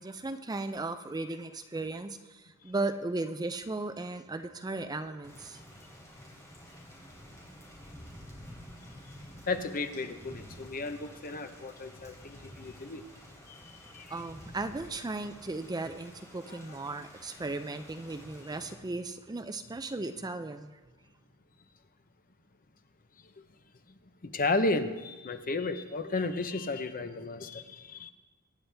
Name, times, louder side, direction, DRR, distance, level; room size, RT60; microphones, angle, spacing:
voice 1, 0.0-5.6 14.1-20.8, right 2 dB, 20° right, 9 dB, 0.4 m, -36 dB
Thunder / Rain, 5.2-18.7, equal, 15° left, 3.3 m, -50 dB
voice 2, 9.5-13.0 13.5-14.1 16.5-16.8 23.2-23.3 24.2-28.1, left 3 dB, 40° left, 8 dB, 0.8 m, -34 dB
23.5 x 9.6 x 3.4 m, 1.2 s
head